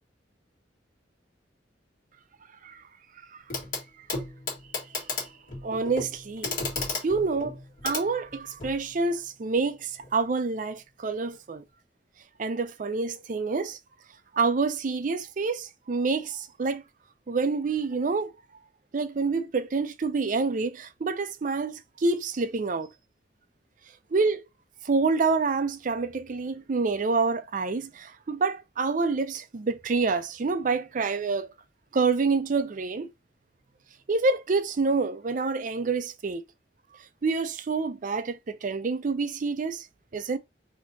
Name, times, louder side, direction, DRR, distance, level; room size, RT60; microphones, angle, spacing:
Clock, 3.5-3.8 4.1-8.8 10.0-10.1, left 3 dB, 50° left, 1.5 m, -34 dB
voice 1, 5.6-6.6 7.0-7.6 7.8-11.6 12.4-13.8 14.3-16.8 17.3-18.3 18.9-22.9 24.1-24.4 24.8-31.5 31.9-33.1 34.1-36.4 37.2-39.9 40.1-40.4, right 4 dB, 45° right, 0.4 m, -27 dB
4.2 x 2.8 x 2.7 m
head